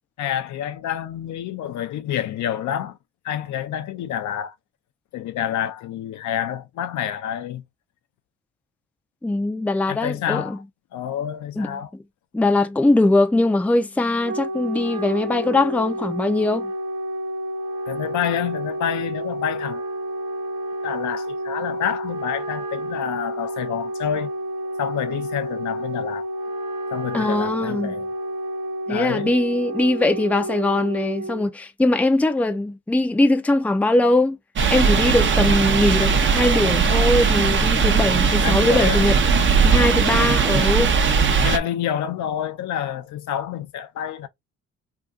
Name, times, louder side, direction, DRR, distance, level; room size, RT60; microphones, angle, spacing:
voice 1, 0.2-3.0 3.2-4.5 5.1-7.6 9.9-10.6 10.9-11.9 17.9-19.8 20.8-24.3 24.8-26.3 26.9-28.1 28.9-29.3 38.4-39.1 41.4-44.3, left 10 dB, 75° left, 0.6 m, -28 dB
voice 2, 9.2-10.6 11.6-11.8 12.3-16.7 27.1-27.9 28.9-34.4 34.7-39.2 39.6-40.9, left 2 dB, 5° left, 0.5 m, -21 dB
Wind instrument woodwind instrument, 14.0-31.5, right 1 dB, 75° right, 1.1 m, -30 dB
sound 1, 34.6-41.6, right 5 dB, 40° right, 0.7 m, -19 dB
2.7 x 2.4 x 3.5 m
cardioid pair, 90°, 30 cm